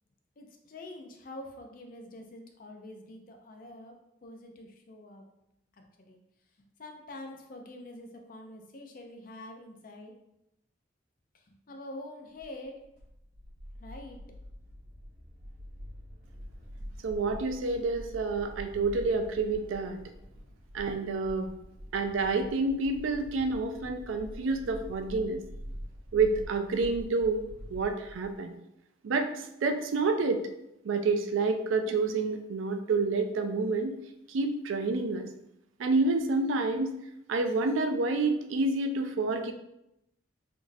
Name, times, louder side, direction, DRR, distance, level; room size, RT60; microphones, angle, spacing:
voice 1, 0.4-5.2 5.7-6.2 6.6-10.1 11.5-12.8 13.8-14.2, left 1 dB, 45° left, 3 dB, 0.4 m, -46 dB
sound 1, 12.4-28.4, equal, 50° right, 1.3 m, -46 dB
voice 2, 17.0-20.0 20.7-21.5 21.9-25.4 26.1-27.4 27.7-28.5 29.0-30.4 30.8-34.0 34.3-35.3 35.8-36.9 37.3-39.5, right 3 dB, 90° right, 6 dB, 0.4 m, -28 dB
3.7 x 2.4 x 2.6 m, 0.84 s
head